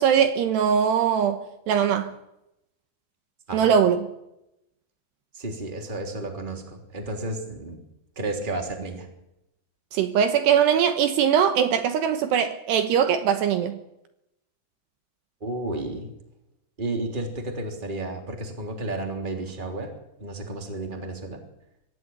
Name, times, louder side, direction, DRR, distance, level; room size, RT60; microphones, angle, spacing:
voice 1, 0.0-1.4 1.7-2.2 3.5-4.1 9.9-13.8, right 8 dB, 75° right, 3.0 m, -21 dB
voice 2, 5.3-7.8 8.1-9.1 15.4-16.1 16.8-19.9 20.2-21.4, right 2 dB, 10° right, 2.7 m, -32 dB
23.5 x 14.5 x 9.4 m
omnidirectional pair, 5.3 m